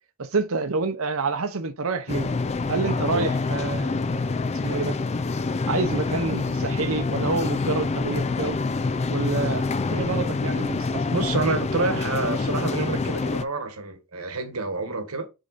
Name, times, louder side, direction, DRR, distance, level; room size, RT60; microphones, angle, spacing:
voice 1, 0.2-2.3 2.7-5.0 5.7-8.6 9.1-9.6 9.9-11.1, right 3 dB, 70° right, 0.8 m, -28 dB
sound 1, 2.1-13.4, left 3 dB, 30° left, 0.4 m, -26 dB
voice 2, 11.1-15.3, right 3 dB, 85° right, 1.4 m, -28 dB
5.3 x 4.9 x 4.1 m
head